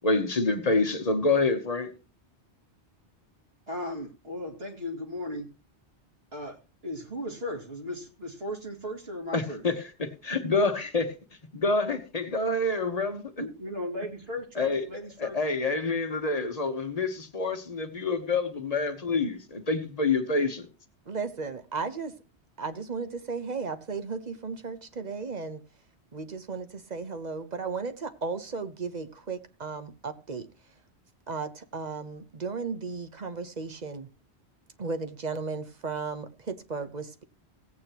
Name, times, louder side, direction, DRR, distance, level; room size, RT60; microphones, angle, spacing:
voice 1, 0.0-1.9 9.3-11.1 11.5-13.3 14.6-14.8 15.2-20.7, left 3 dB, 35° left, 1.2 m, -27 dB
voice 2, 3.7-5.5 6.3-6.6 6.8-9.6 13.4-15.4, left 1 dB, 65° right, 2.5 m, -36 dB
voice 3, 21.1-22.1 22.6-25.6 26.1-30.5 31.3-34.1 34.8-37.2, right 4 dB, 40° right, 1.0 m, -35 dB
16.5 x 8.7 x 3.0 m
omnidirectional pair, 1.1 m